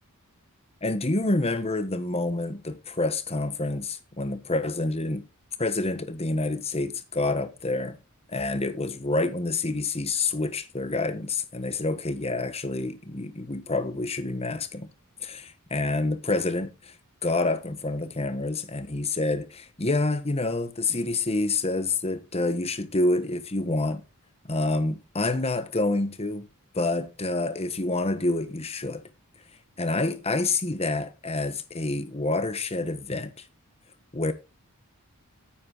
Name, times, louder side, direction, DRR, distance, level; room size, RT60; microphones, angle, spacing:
voice 1, 0.8-5.3 5.6-8.0 8.3-14.9 15.2-16.9 17.2-24.0 24.5-26.5 26.7-29.0 29.8-33.5 34.1-34.3, left 2 dB, 30° left, 1.3 m, -28 dB
9.7 x 8.6 x 4.0 m
head